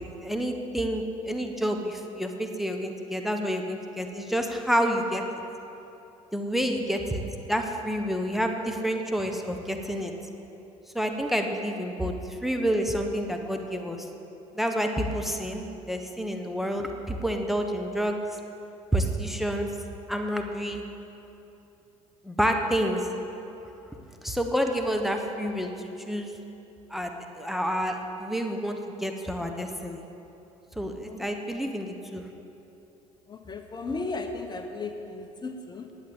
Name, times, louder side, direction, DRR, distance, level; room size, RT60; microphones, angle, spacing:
voice 1, 0.0-5.2 6.3-7.2 7.5-10.1 10.9-14.1 14.5-18.2 18.9-19.7 20.1-20.8 22.2-23.0 24.2-26.3 26.9-30.0 30.8-32.2, equal, ahead, 4 dB, 1.2 m, -29 dB
voice 2, 30.8-31.3 33.3-35.9, left 3 dB, 25° left, 5 dB, 1.1 m, -36 dB
11.0 x 8.5 x 8.0 m, 2.9 s
hypercardioid pair, 75°, 16 cm